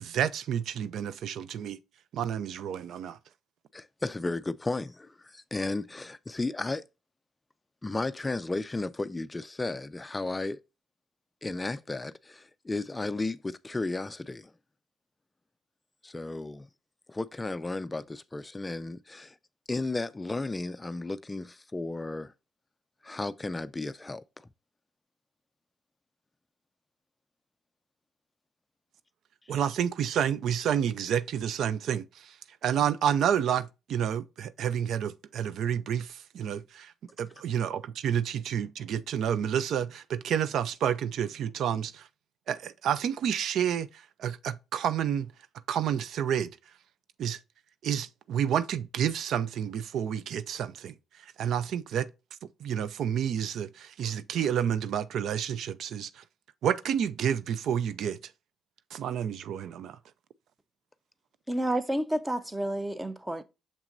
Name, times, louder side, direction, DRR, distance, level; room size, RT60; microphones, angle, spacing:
voice 1, 0.0-1.8 2.1-3.2 29.5-32.0 32.6-36.1 36.3-36.9 37.2-41.9 42.5-43.9 44.2-45.3 45.7-46.5 47.2-47.4 47.8-50.9 51.4-52.1 52.6-56.1 56.6-58.2 58.9-59.9, right 9 dB, 75° right, 0.4 m, -29 dB
voice 2, 3.7-6.8 7.8-10.6 11.4-14.5 16.0-16.7 17.1-19.4 19.7-22.3 23.0-24.2, left 2 dB, 20° left, 0.3 m, -34 dB
voice 3, 61.5-63.4, right 1 dB, 15° right, 0.8 m, -30 dB
6.7 x 5.8 x 2.5 m
cardioid pair, 90°, 0 cm